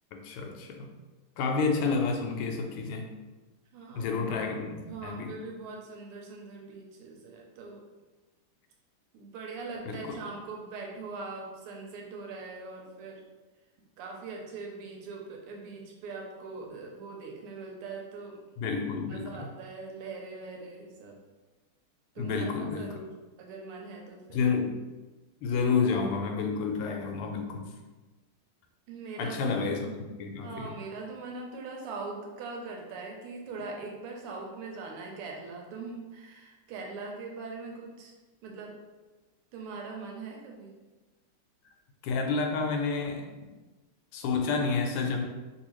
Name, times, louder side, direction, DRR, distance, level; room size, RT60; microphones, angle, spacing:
voice 1, 0.1-0.9 1.4-3.1 3.9-5.3 9.8-10.2 18.6-19.5 22.2-23.0 24.3-24.8 25.4-27.7 29.2-30.7 42.0-43.3 44.1-45.2, left 4 dB, 90° left, 3 dB, 1.5 m, -30 dB
voice 2, 3.7-4.2 4.9-7.8 9.1-13.2 14.0-18.4 19.1-21.2 22.1-23.1 23.4-24.4 28.9-29.9 30.4-38.1 38.4-38.7 39.5-40.7, right 3 dB, 90° right, 0 dB, 1.6 m, -41 dB
3.4 x 2.7 x 3.0 m, 1.2 s
omnidirectional pair, 2.4 m